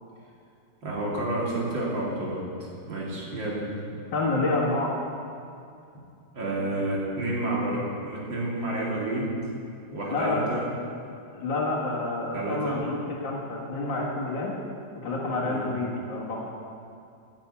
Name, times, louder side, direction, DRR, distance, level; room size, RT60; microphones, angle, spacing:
voice 1, 0.8-3.6 6.3-9.3 9.9-10.6 12.3-12.8 15.4-15.7, right 1 dB, 90° right, -5 dB, 3.4 m, -30 dB
voice 2, 4.1-4.9 10.1-10.4 11.3-14.5 15.0-16.4, left 2 dB, 80° left, -8 dB, 2.5 m, -28 dB
10.0 x 8.9 x 8.3 m, 2.5 s
omnidirectional pair, 2.0 m